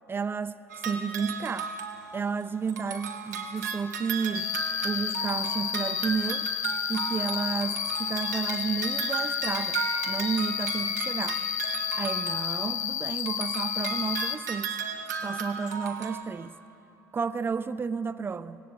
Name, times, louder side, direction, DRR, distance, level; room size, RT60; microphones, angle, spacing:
voice 1, 0.1-1.7 2.1-4.5 4.8-6.5 6.9-9.8 10.1-11.4 11.8-14.8 15.2-16.6 17.1-18.6, right 5 dB, 25° right, 14 dB, 0.7 m, -32 dB
sound 1, 0.7-2.4 2.7-12.9 13.2-16.2, right 5 dB, 75° right, 1.9 m, -35 dB
Cricket, 4.3-14.3, left 11 dB, 70° left, 1.0 m, -31 dB
26.0 x 19.0 x 8.0 m, 2.9 s
figure-of-eight pair, 60°, 9 cm